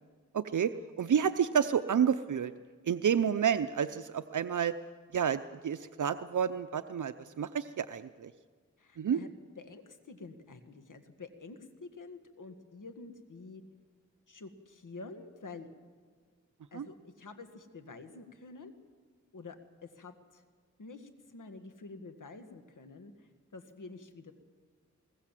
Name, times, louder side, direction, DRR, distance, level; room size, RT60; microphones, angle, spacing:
voice 1, 0.3-2.5 2.9-4.7 5.1-8.3 9.0-9.2 16.7-16.9, right 8 dB, 75° right, 11 dB, 0.7 m, -30 dB
voice 2, 8.8-9.3 9.6-13.6 14.3-15.7 16.7-18.7 19.3-20.4 20.8-23.1 23.5-24.3, left 3 dB, 75° left, 8 dB, 1.9 m, -48 dB
21.5 x 20.0 x 7.6 m, 1.5 s
cardioid pair, 55°, 31 cm